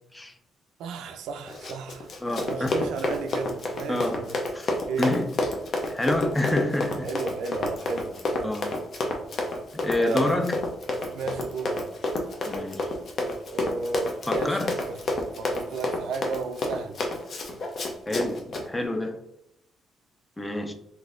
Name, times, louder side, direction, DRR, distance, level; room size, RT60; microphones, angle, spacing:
voice 1, 0.8-2.1 2.4-4.4 4.9-5.1 7.0-8.5 10.0-10.5 11.1-11.8 13.5-15.0 15.4-17.0, right 4 dB, 85° right, 0.3 m, -34 dB
Run, 1.5-18.7, left 2 dB, 55° left, 0.6 m, -29 dB
voice 2, 2.2-2.8 3.9-4.3 4.5-4.7 5.0-5.4 5.9-7.1 8.4-8.7 9.7-10.6 12.5-12.9 14.3-14.8 18.1-19.2 20.4-20.7, left 1 dB, 15° left, 0.4 m, -28 dB
3.8 x 2.7 x 2.5 m
cardioid pair, 90°, 0 cm